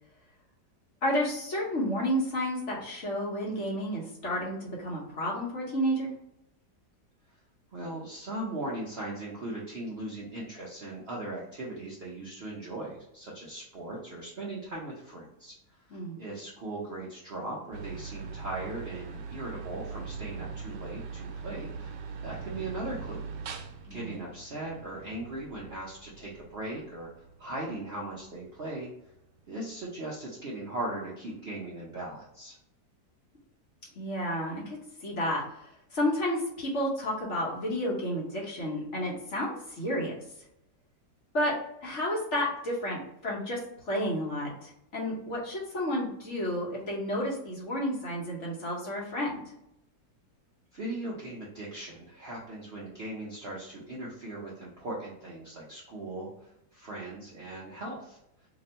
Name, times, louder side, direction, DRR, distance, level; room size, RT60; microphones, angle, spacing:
voice 1, 1.0-6.1 15.9-16.2 23.9-24.2 33.9-40.1 41.3-41.5 41.8-43.6 43.8-49.4, equal, 50° left, -4 dB, 1.1 m, -31 dB
voice 2, 7.7-21.9 22.2-23.3 23.5-27.1 27.4-28.9 29.5-32.6 50.7-58.2, right 2 dB, 60° right, -4 dB, 0.6 m, -39 dB
sound 1, 17.7-30.0, right 5 dB, 90° right, 1.2 m, -42 dB
2.9 x 2.6 x 4.2 m, 0.79 s
omnidirectional pair, 1.8 m